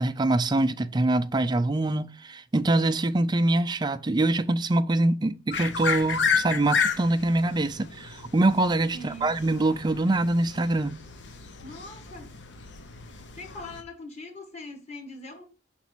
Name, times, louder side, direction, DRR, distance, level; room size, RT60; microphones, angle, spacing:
voice 1, 0.0-11.0, right 2 dB, 25° right, 0.4 m, -24 dB
sound 1, 5.5-13.8, left 5 dB, 80° left, 0.8 m, -32 dB
voice 2, 8.9-9.4 11.6-12.3 13.4-15.4, left 1 dB, 40° left, 1.6 m, -41 dB
5.9 x 4.0 x 6.1 m
head